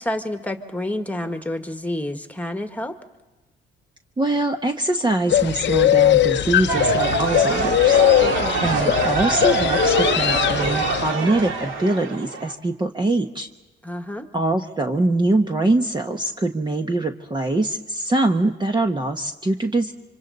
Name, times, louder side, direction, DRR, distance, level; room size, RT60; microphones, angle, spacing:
voice 1, 0.0-3.0 8.2-8.6 13.8-14.3, left 1 dB, 5° left, 6 dB, 1.8 m, -29 dB
voice 2, 4.2-8.0 8.6-13.5 14.3-19.9, right 2 dB, 20° right, 4 dB, 1.2 m, -23 dB
sound 1, 5.3-11.1, left 12 dB, 65° left, 0.7 m, -20 dB
sound 2, 6.7-12.5, right 4 dB, 80° right, 2.1 m, -24 dB
27.0 x 25.5 x 4.1 m, 1.1 s
cardioid pair, 90°, 20 cm